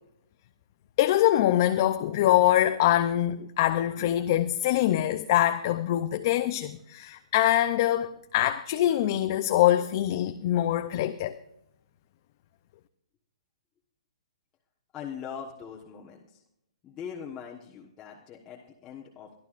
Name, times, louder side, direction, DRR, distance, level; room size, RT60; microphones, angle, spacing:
voice 1, 1.0-11.3, left 13 dB, 35° left, 0.6 m, -24 dB
voice 2, 14.9-16.4 16.8-19.3, left 7 dB, 15° left, 1.3 m, -41 dB
23.5 x 12.5 x 2.5 m
hypercardioid pair, 160°, 3 cm